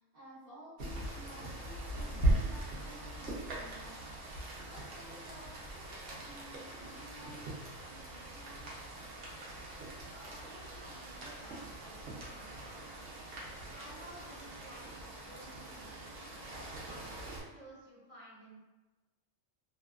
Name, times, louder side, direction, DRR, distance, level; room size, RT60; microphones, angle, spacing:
voice 1, 0.0-4.3 4.7-9.0 17.1-17.5, equal, 50° right, -11 dB, 1.0 m, -54 dB
Rain, 0.8-17.4, right 1 dB, 75° right, 1.0 m, -40 dB
voice 2, 10.1-13.0 13.7-16.3 16.8-18.6, right 1 dB, 10° right, -10 dB, 1.1 m, -55 dB
2.6 x 2.3 x 2.3 m, 1.2 s
omnidirectional pair, 1.3 m